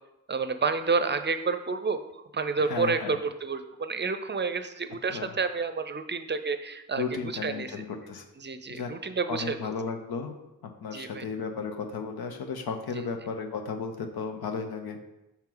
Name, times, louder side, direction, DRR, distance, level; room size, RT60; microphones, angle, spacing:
voice 1, 0.3-7.8 8.4-9.7 10.9-11.2 13.0-13.1, right 4 dB, 30° right, 10 dB, 0.5 m, -30 dB
voice 2, 2.7-3.1 5.1-5.3 7.0-8.2 8.7-8.9 9.3-10.3 10.8-15.0, left 5 dB, 85° left, 6 dB, 0.7 m, -34 dB
5.7 x 4.4 x 3.9 m, 0.94 s
cardioid pair, 45°, 36 cm